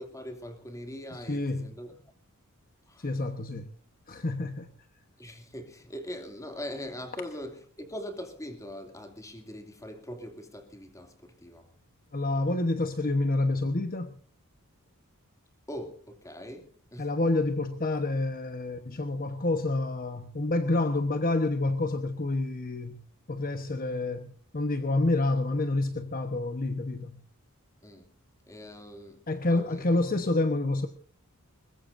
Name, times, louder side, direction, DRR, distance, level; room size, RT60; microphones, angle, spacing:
voice 1, 0.0-2.1 2.9-3.3 5.2-11.7 15.7-17.1 27.8-28.1 28.5-29.8, equal, 15° left, 2.6 m, -42 dB
voice 2, 1.3-1.7 3.0-3.7 4.1-4.7 12.1-14.2 17.0-23.0 23.3-27.2 29.3-30.9, left 2 dB, 40° left, 1.1 m, -28 dB
21.5 x 21.0 x 2.7 m
head